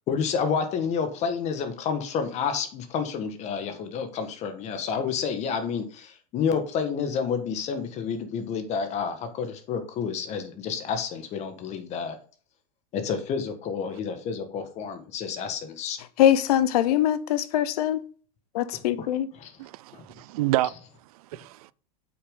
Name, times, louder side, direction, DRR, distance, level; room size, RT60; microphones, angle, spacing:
voice 1, 0.1-12.2 12.9-16.0 18.7-19.1 19.4-19.5 19.9-20.0, left 6 dB, 35° left, 1.6 m, -29 dB
voice 2, 16.2-18.1 18.5-19.3, left 11 dB, 75° left, 0.8 m, -22 dB
voice 3, 19.6-20.7 21.1-21.7, right 16 dB, 70° right, 0.5 m, -29 dB
8.0 x 6.3 x 3.8 m
supercardioid pair, 145°, 20 cm